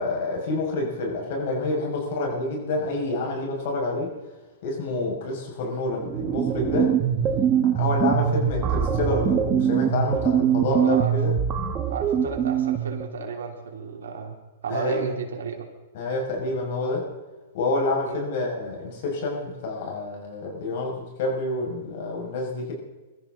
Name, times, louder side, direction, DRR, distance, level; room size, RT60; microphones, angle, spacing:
voice 1, 0.0-4.1 4.6-7.0 7.6-11.3 14.7-15.1 15.9-17.1 17.5-22.7, left 2 dB, 60° left, -1 dB, 6.2 m, -28 dB
sound 1, 5.9-13.0, right 8 dB, 25° right, 1.6 m, -23 dB
voice 2, 10.7-11.2 11.9-14.4 14.6-15.7 18.0-18.2, right 5 dB, 80° right, 1 dB, 3.5 m, -32 dB
23.5 x 14.0 x 4.0 m, 1.2 s
hypercardioid pair, 125°, 0 cm